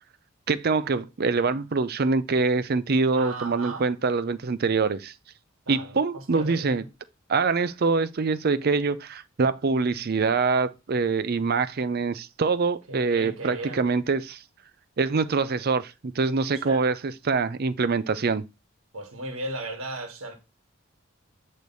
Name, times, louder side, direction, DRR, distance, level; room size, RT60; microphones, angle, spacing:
voice 1, 0.5-5.1 5.7-6.8 7.3-14.4 15.0-18.4, right 4 dB, 45° right, 0.5 m, -24 dB
voice 2, 3.1-3.9 5.7-6.8 12.9-13.8 16.6-16.8 18.9-20.3, right 2 dB, 75° right, 1.4 m, -36 dB
8.6 x 3.2 x 3.9 m
head